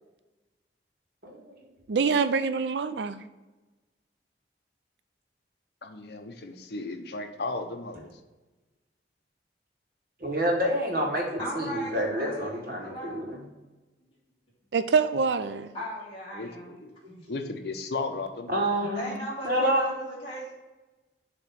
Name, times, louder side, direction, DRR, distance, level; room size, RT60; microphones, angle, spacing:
voice 1, 1.2-1.6 10.2-11.3 11.5-13.4 18.5-19.1 19.4-19.9, equal, 55° right, 0 dB, 1.6 m, -27 dB
voice 2, 1.9-3.2 14.7-15.7, right 5 dB, 80° right, 12 dB, 0.4 m, -25 dB
voice 3, 5.8-8.2 16.3-16.9 17.3-18.7, left 3 dB, 65° left, 5 dB, 0.7 m, -35 dB
voice 4, 11.4-13.3 15.7-16.8 17.1-17.2 18.8-20.5, equal, 30° left, -8 dB, 2.2 m, -37 dB
7.1 x 3.0 x 5.9 m, 1.1 s
head